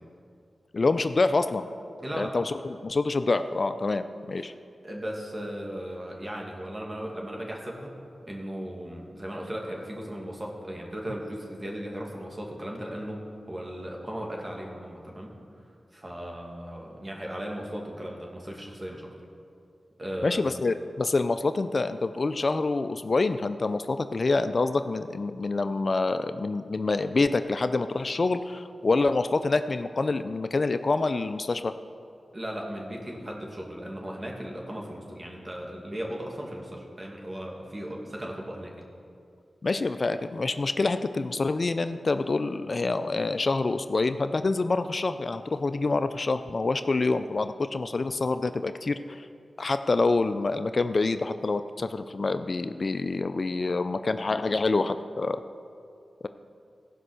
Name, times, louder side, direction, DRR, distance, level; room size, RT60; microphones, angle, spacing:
voice 1, 0.7-1.7 2.1-4.5 20.2-31.7 39.6-49.3 49.6-55.4, left 3 dB, 55° left, 10 dB, 0.4 m, -26 dB
voice 2, 2.0-2.4 4.4-4.5 4.8-8.0 8.3-15.3 15.9-19.1 20.0-20.5 32.3-38.7, equal, 35° right, 0 dB, 2.2 m, -37 dB
16.0 x 5.4 x 6.4 m, 2.4 s
cardioid pair, 45°, 0 cm